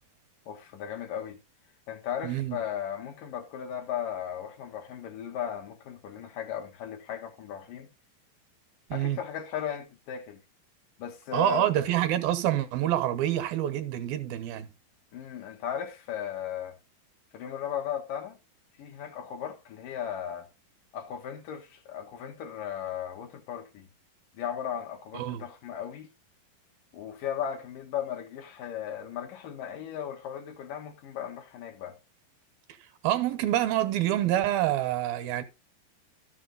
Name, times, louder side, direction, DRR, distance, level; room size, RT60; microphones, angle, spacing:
voice 1, 0.5-1.4 1.9-7.9 8.9-10.4 11.0-11.7 15.1-16.7 17.3-18.4 18.8-20.5 20.9-23.9 24.3-26.1 26.9-32.0, left 9 dB, 70° left, 3.3 m, -36 dB
voice 2, 2.2-2.6 8.9-9.2 11.3-14.7 25.1-25.4 33.0-35.4, right 13 dB, 85° right, 3.0 m, -27 dB
13.0 x 7.0 x 4.0 m
omnidirectional pair, 4.2 m